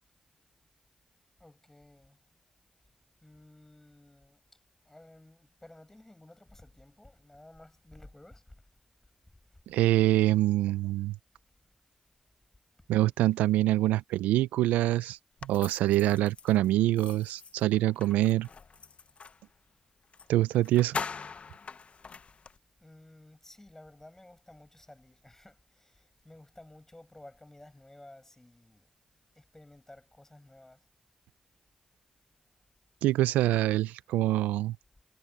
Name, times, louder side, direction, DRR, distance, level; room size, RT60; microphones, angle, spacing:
voice 1, 1.4-2.2 3.2-4.4 4.8-8.7 9.5-9.6 12.8-12.9 22.8-28.9 29.3-30.9, left 1 dB, 15° left, 7.5 m, -54 dB
voice 2, 9.7-11.2 12.9-18.5 20.3-21.0 33.0-34.8, right 15 dB, 85° right, 0.5 m, -25 dB
sound 1, 15.4-19.4 20.1-20.3 20.5-22.6, left 5 dB, 50° left, 0.8 m, -42 dB
hypercardioid pair, 40°, 3 cm